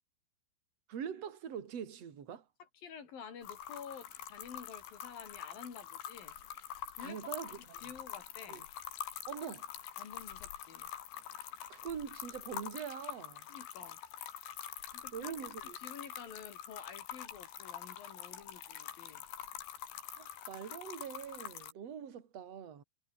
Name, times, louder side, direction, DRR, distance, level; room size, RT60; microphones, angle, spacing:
voice 1, 0.9-2.4 7.0-7.8 8.5-8.6 9.3-9.7 11.7-13.5 15.1-15.8 20.0-22.8, right 8 dB, 40° right, 3.5 m, -43 dB
voice 2, 2.6-6.4 7.0-8.7 10.0-10.9 13.5-14.0 14.9-15.4 15.6-19.2, left 7 dB, 55° left, 5.8 m, -50 dB
sound 1, 3.4-21.7, left 11 dB, 85° left, 4.7 m, -46 dB
omnidirectional pair, 5.1 m